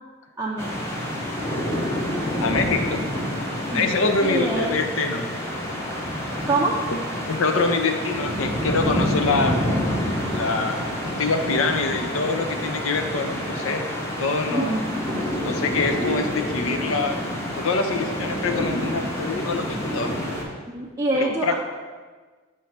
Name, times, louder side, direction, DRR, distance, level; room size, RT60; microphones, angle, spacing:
voice 1, 0.4-0.8 3.7-4.8 6.5-6.8 14.5-15.0 18.7-19.1 20.7-21.6, right 2 dB, 15° right, -4 dB, 0.4 m, -26 dB
sound 1, 0.6-20.4, equal, 10° left, 0.8 m, -28 dB
voice 2, 2.4-3.1 3.7-5.3 6.9-7.0 7.3-9.6 10.3-13.9 14.2-14.8 15.4-17.2 17.5-20.2 21.1-21.6, left 3 dB, 75° left, 5 dB, 0.6 m, -25 dB
6.6 x 3.2 x 5.7 m, 1.4 s
head